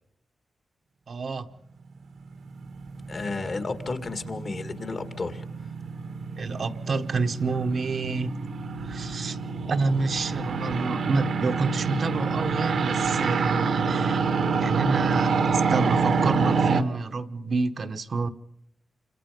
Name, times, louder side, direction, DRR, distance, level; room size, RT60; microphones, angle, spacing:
voice 1, 1.1-1.5 6.4-8.4 8.9-9.4 9.7-14.2 14.6-18.3, right 4 dB, 60° right, 1.1 m, -28 dB
sound 1, 2.2-16.8, right 4 dB, 80° right, 1.6 m, -27 dB
voice 2, 3.1-5.4, left 3 dB, 50° left, 2.1 m, -32 dB
28.5 x 26.5 x 5.3 m
cardioid pair, 85°, 0 cm